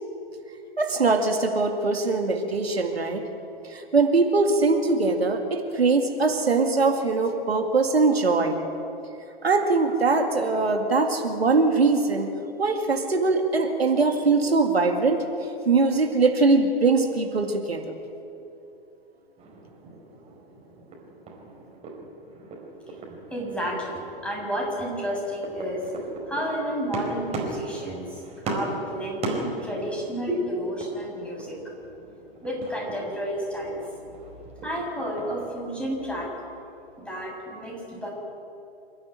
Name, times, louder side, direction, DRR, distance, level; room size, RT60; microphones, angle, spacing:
voice 1, 0.8-3.3 3.7-8.6 9.4-12.3 12.6-15.2 15.7-17.8, right 3 dB, 80° right, 4 dB, 2.3 m, -22 dB
sound 1, 19.4-35.6, right 2 dB, 20° right, 4.8 m, -38 dB
voice 2, 23.3-25.9 26.3-31.5 32.4-33.8 34.6-36.3 37.0-38.1, equal, 5° left, -2 dB, 6.9 m, -31 dB
27.5 x 12.5 x 10.0 m, 2.8 s
figure-of-eight pair, 105°, 30 cm